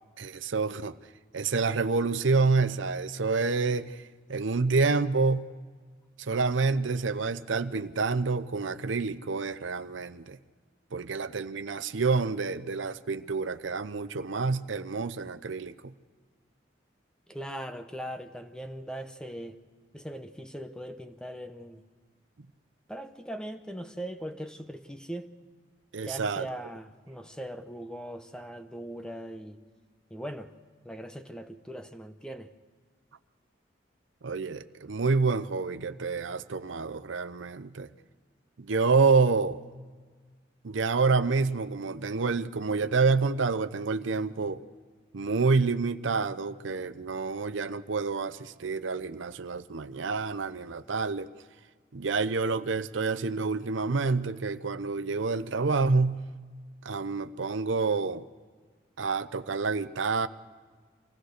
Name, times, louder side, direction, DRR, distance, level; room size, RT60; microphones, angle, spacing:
voice 1, 0.2-1.0 1.3-4.0 4.3-5.4 6.2-10.4 10.9-15.9 25.9-26.5 34.2-37.9 38.6-39.6 40.6-44.6 45.1-51.3 51.9-56.2 56.8-58.3 59.0-60.3, right 4 dB, 75° right, 13 dB, 0.7 m, -28 dB
voice 2, 17.3-19.6 19.9-21.8 22.9-25.3 26.1-29.6 30.1-30.5 30.8-32.5, equal, 5° left, 8 dB, 0.8 m, -40 dB
25.0 x 16.5 x 6.5 m, 1.5 s
head